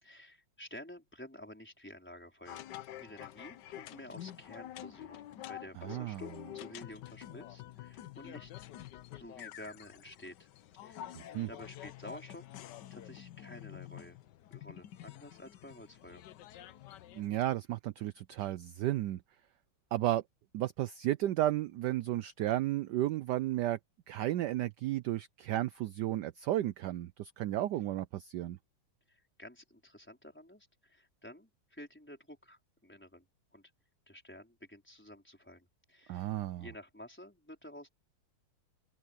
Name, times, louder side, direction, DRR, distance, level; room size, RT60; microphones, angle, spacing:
voice 1, 0.0-2.6 3.0-8.5 9.1-10.5 10.8-11.2 11.5-12.5 12.9-16.2 29.1-33.2 33.5-33.7 34.1-36.3 36.6-37.9, left 1 dB, 5° left, 4.7 m, -51 dB
sound 1, 2.5-17.3, left 13 dB, 65° left, 1.2 m, -48 dB
voice 2, 5.9-6.2 11.3-11.5 17.1-19.2 19.9-20.2 20.5-23.8 24.1-28.6 36.1-36.7, right 14 dB, 75° right, 1.0 m, -33 dB
open air
omnidirectional pair, 2.3 m